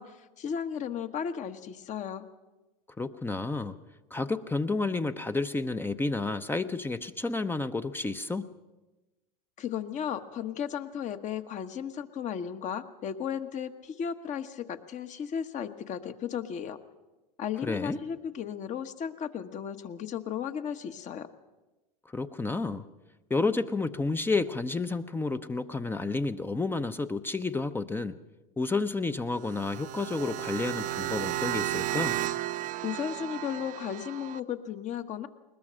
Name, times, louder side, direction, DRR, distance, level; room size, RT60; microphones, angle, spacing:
voice 1, 0.0-2.3 9.6-16.8 17.4-21.3 32.8-35.3, left 8 dB, 35° left, 10 dB, 1.3 m, -35 dB
voice 2, 3.0-3.8 4.1-8.5 17.6-18.0 22.1-22.8 23.3-28.2 28.6-32.2, left 3 dB, 10° left, 10 dB, 0.7 m, -30 dB
sound 1, 29.3-34.4, right 15 dB, 40° right, 0.8 m, -33 dB
21.0 x 20.5 x 6.4 m, 1.1 s
hypercardioid pair, 105°, 20 cm